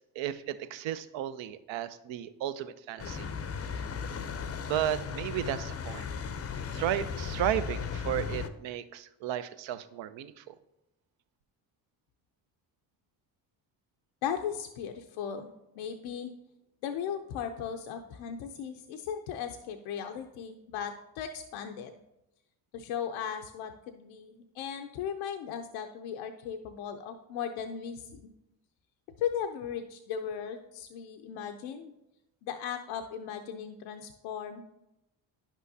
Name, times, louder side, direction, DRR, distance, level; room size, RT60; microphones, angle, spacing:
voice 1, 0.0-3.3 4.7-6.0 6.7-10.6, right 11 dB, 70° right, 13 dB, 0.6 m, -34 dB
sound 1, 3.0-8.5, left 6 dB, 30° left, 0.5 m, -36 dB
voice 2, 14.2-16.3 16.8-21.9 22.7-28.3 29.2-31.9 32.4-34.6, left 8 dB, 80° left, 6 dB, 0.6 m, -37 dB
10.0 x 6.2 x 2.7 m, 0.89 s
supercardioid pair, 55°, 48 cm